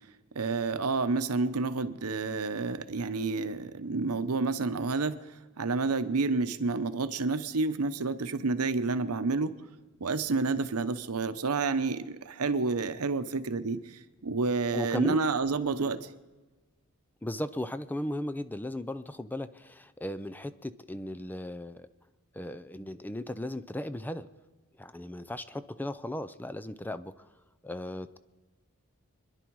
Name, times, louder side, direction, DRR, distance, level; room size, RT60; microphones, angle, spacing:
voice 1, 0.3-5.2 5.6-9.5 10.0-16.1, right 3 dB, 90° right, 12 dB, 0.8 m, -29 dB
voice 2, 14.7-15.2 17.2-21.9 22.3-24.3 24.8-27.3 27.6-28.2, left 1 dB, 10° left, 13 dB, 0.5 m, -36 dB
26.0 x 10.5 x 4.7 m, 1.2 s
head